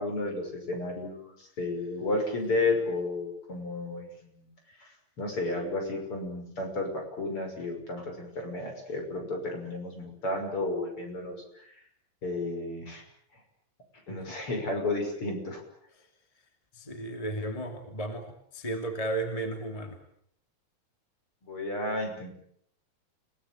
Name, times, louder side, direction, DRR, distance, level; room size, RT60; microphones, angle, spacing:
voice 1, 0.0-4.5 4.8-4.9 5.2-6.9 7.2-11.4 12.2-13.0 14.1-15.6 21.4-22.3, left 2 dB, 45° left, 3 dB, 7.2 m, -32 dB
voice 2, 16.7-20.0, right 2 dB, 10° left, 5 dB, 2.5 m, -34 dB
30.0 x 18.5 x 8.9 m, 0.69 s
omnidirectional pair, 3.3 m